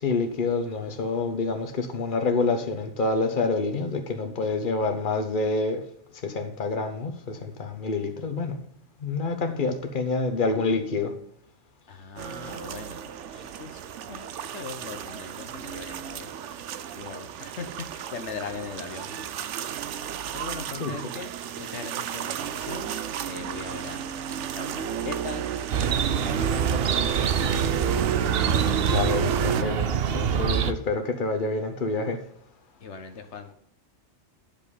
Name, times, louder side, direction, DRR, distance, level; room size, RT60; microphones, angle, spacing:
voice 1, 0.0-5.8 6.2-8.6 9.0-11.1 20.8-21.0 28.7-29.9 30.1-32.2, left 3 dB, 45° left, 6 dB, 1.3 m, -27 dB
voice 2, 11.9-13.1 13.4-13.8 14.1-16.3 17.0-19.5 20.3-25.5 26.1-27.6 32.8-33.5, left 5 dB, 75° left, 6 dB, 1.3 m, -40 dB
sound 1, 12.2-29.6, right 8 dB, 85° right, 1.0 m, -33 dB
Chirp tweet, 25.7-30.7, right 7 dB, 60° right, 0.9 m, -25 dB
10.5 x 5.2 x 5.5 m, 0.67 s
omnidirectional pair, 1.2 m